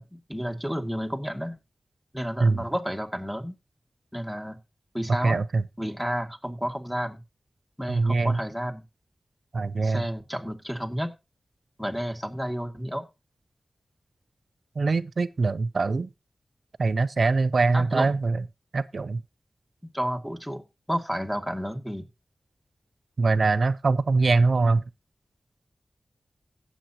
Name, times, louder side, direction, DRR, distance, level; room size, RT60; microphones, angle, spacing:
voice 1, 0.0-1.6 2.1-3.6 4.1-4.6 4.9-5.4 5.8-7.2 7.8-8.8 9.8-11.1 11.8-13.1 17.7-18.1 19.9-22.1, equal, ahead, 1.9 m, -31 dB
voice 2, 5.2-5.6 7.9-8.4 9.5-10.1 14.8-16.1 16.8-18.4 18.7-19.2 23.2-24.8, right 3 dB, 70° right, 0.5 m, -23 dB
17.0 x 7.3 x 2.9 m
cardioid pair, 50°, 0 cm